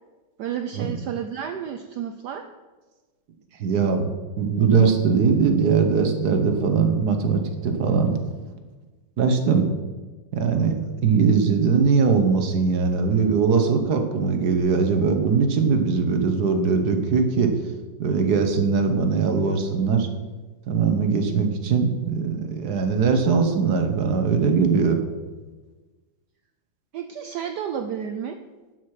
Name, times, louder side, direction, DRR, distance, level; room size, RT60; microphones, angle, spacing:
voice 1, 0.4-2.5 26.9-28.4, right 8 dB, 75° right, 7 dB, 0.9 m, -31 dB
voice 2, 3.6-4.1 4.4-8.2 9.2-9.7 10.3-17.5 18.0-20.1 20.7-25.0, right 5 dB, 60° right, 6 dB, 1.4 m, -21 dB
11.5 x 6.0 x 4.8 m, 1.3 s
omnidirectional pair, 2.3 m